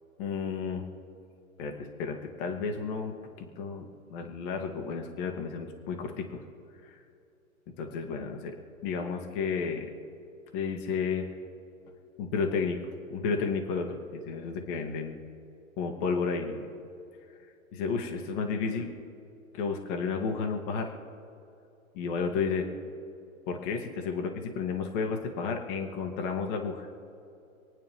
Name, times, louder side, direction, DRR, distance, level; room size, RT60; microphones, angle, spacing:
voice 1, 0.2-0.8 1.6-6.4 6.8-6.9 7.8-8.6 8.8-9.9 10.5-11.3 12.2-12.8 13.1-15.2 15.8-16.6 17.7-18.9 19.5-21.0 21.9-22.7 23.5-26.9, left 5 dB, 35° left, 3 dB, 2.1 m, -32 dB
27.5 x 9.2 x 3.7 m, 2.7 s
hypercardioid pair, 135°, 42 cm